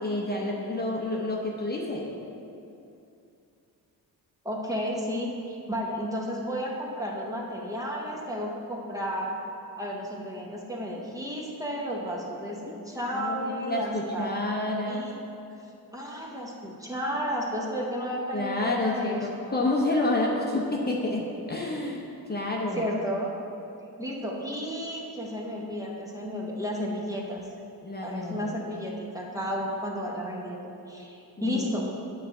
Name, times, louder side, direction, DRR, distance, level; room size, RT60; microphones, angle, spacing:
voice 1, 0.0-2.1 12.7-12.8 13.1-15.1 18.3-22.0 22.3-22.9 27.8-28.5 31.4-31.8, left 2 dB, 25° left, -2 dB, 0.8 m, -29 dB
voice 2, 4.4-9.4 9.8-14.3 14.8-15.2 15.9-19.3 22.7-23.3 24.0-27.4 28.0-31.8, equal, 10° right, -3 dB, 0.9 m, -32 dB
9.5 x 3.3 x 6.5 m, 2.7 s
cardioid pair, 120°, 38 cm